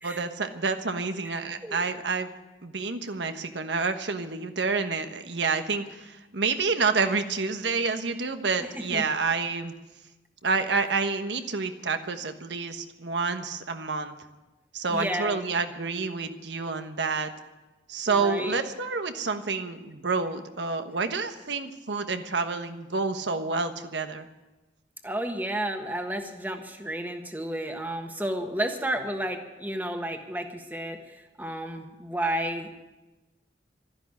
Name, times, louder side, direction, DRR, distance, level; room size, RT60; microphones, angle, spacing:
voice 1, 0.0-2.3 2.6-9.7 10.4-14.1 14.7-17.3 17.9-24.3, right 4 dB, 90° right, 8 dB, 1.2 m, -28 dB
voice 2, 14.9-15.4 18.1-18.6 25.0-32.8, right 1 dB, 10° right, 5 dB, 1.4 m, -32 dB
12.5 x 11.0 x 9.7 m, 1.1 s
head